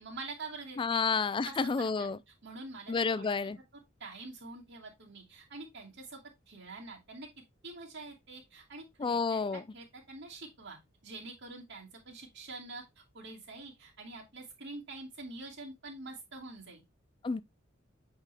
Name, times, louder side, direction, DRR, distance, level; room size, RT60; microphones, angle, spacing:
voice 1, 0.0-1.1 1.4-2.1 2.4-3.3 4.0-6.2 6.5-7.3 7.6-16.8, right 3 dB, 60° right, 2.6 m, -46 dB
voice 2, 0.8-2.2 2.9-3.6 9.0-9.6 17.2-17.4, left 4 dB, 25° left, 0.3 m, -30 dB
8.2 x 3.8 x 3.4 m
head